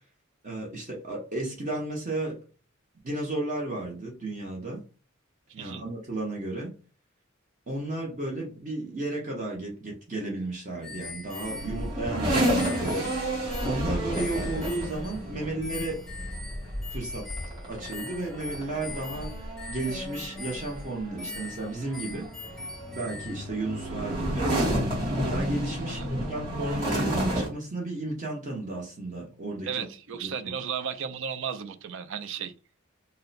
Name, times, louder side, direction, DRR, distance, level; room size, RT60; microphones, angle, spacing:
voice 1, 0.4-2.4 3.0-4.8 5.5-6.7 7.7-13.4 13.6-16.0 16.9-17.3 17.7-22.6 22.9-29.9 30.2-30.3, right 2 dB, 40° right, 0.8 m, -34 dB
voice 2, 5.5-5.8 25.9-26.1 29.6-32.5, right 7 dB, 65° right, 0.4 m, -34 dB
sound 1, 10.8-15.3 15.6-23.4, left 3 dB, 5° left, 0.4 m, -42 dB
sound 2, 11.4-27.5, equal, 25° right, 1.7 m, -31 dB
2.7 x 2.1 x 3.9 m
head